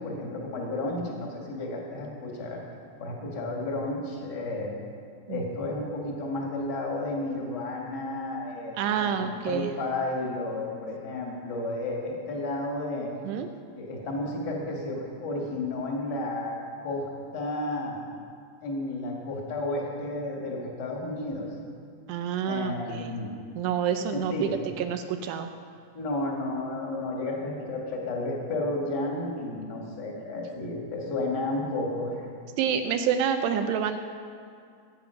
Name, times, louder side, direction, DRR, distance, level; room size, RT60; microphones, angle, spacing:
voice 1, 0.0-2.6 3.0-4.7 5.3-13.1 13.6-16.6 16.8-18.0 18.6-21.5 22.4-23.3 24.1-24.6 25.9-32.2, left 2 dB, 40° left, -1 dB, 1.5 m, -32 dB
voice 2, 8.8-9.7 13.2-13.5 22.1-23.1 23.6-24.5 24.8-25.5 32.6-34.0, right 8 dB, 80° right, 7 dB, 2.6 m, -28 dB
19.0 x 8.7 x 5.7 m, 2.2 s
omnidirectional pair, 5.1 m